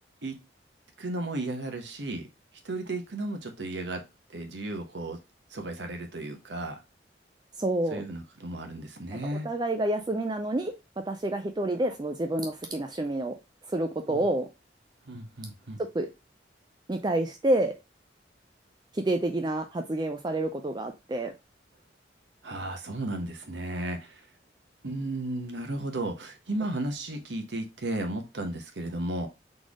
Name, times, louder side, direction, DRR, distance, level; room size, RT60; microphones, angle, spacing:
voice 1, 1.0-2.3 2.6-4.0 4.3-5.2 5.5-6.8 7.9-9.5 14.1-14.2 15.1-15.8 22.4-24.2 24.8-29.3, right 1 dB, 80° right, 1.1 m, -34 dB
voice 2, 7.6-8.0 9.1-10.7 11.1-13.3 13.7-14.5 15.8-16.1 16.9-17.7 18.9-21.3, right 1 dB, 25° right, 0.4 m, -28 dB
4.1 x 3.3 x 3.6 m
head